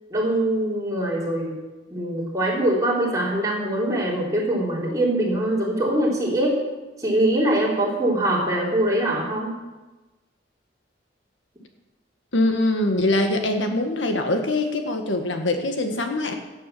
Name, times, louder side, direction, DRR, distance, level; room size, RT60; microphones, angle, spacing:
voice 1, 0.1-1.6 1.9-6.6 7.0-9.6, right 1 dB, 20° right, -4 dB, 4.0 m, -23 dB
voice 2, 12.3-16.3, left 2 dB, 80° left, 5 dB, 1.7 m, -23 dB
17.0 x 9.3 x 7.0 m, 1.1 s
head